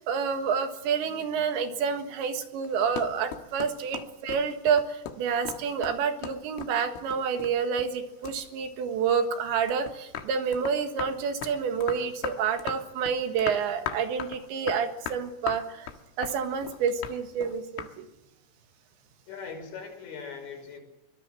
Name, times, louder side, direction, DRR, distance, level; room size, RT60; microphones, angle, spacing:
voice 1, 0.0-15.9 16.2-18.0, right 6 dB, 70° right, 7 dB, 3.7 m, -28 dB
sound 1, 2.6-8.0 8.2-9.3 9.7-17.9, left 10 dB, 85° left, 4.0 m, -38 dB
voice 2, 19.3-20.8, left 5 dB, 60° left, 3 dB, 7.8 m, -40 dB
24.0 x 21.5 x 7.6 m, 0.94 s
omnidirectional pair, 5.7 m